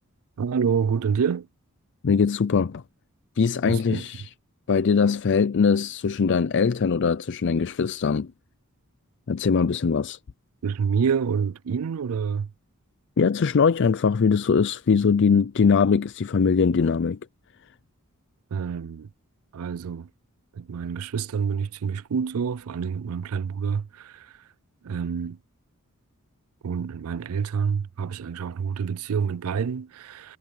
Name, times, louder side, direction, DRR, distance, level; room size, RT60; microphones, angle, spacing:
voice 1, 0.4-1.5 3.7-4.1 10.6-12.5 18.5-19.1 19.5-20.1 20.5-24.5 24.8-25.4 26.6-30.4, right 6 dB, 75° right, 0.4 m, -27 dB
voice 2, 2.0-2.8 3.4-4.3 4.7-8.3 9.3-10.2 13.2-17.2, left 5 dB, 55° left, 0.4 m, -21 dB
head